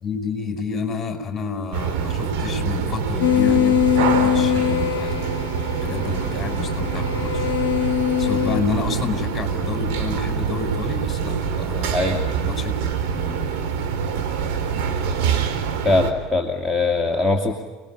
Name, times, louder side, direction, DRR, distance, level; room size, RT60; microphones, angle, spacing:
voice 1, 0.0-5.2 5.8-7.4 8.2-12.7 13.1-13.4, left 4 dB, 20° left, 5 dB, 5.5 m, -29 dB
sound 1, 1.7-16.1, right 7 dB, 50° right, 3.7 m, -25 dB
sound 2, 3.2-8.6, left 10 dB, 65° left, 0.7 m, -22 dB
voice 2, 15.8-17.5, left 2 dB, ahead, 2 dB, 2.6 m, -21 dB
29.5 x 20.0 x 8.5 m, 1.3 s
figure-of-eight pair, 75°, 0 cm